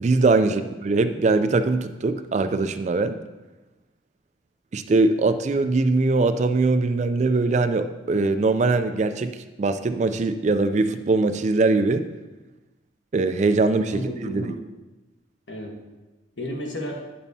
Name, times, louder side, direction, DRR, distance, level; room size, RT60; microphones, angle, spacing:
voice 1, 0.0-3.2 4.7-12.1 13.1-14.5, right 3 dB, 35° right, 10 dB, 0.3 m, -22 dB
voice 2, 13.9-14.6 15.5-15.8 16.4-17.1, equal, 70° left, 1 dB, 1.3 m, -33 dB
9.3 x 7.0 x 2.7 m, 1.1 s
head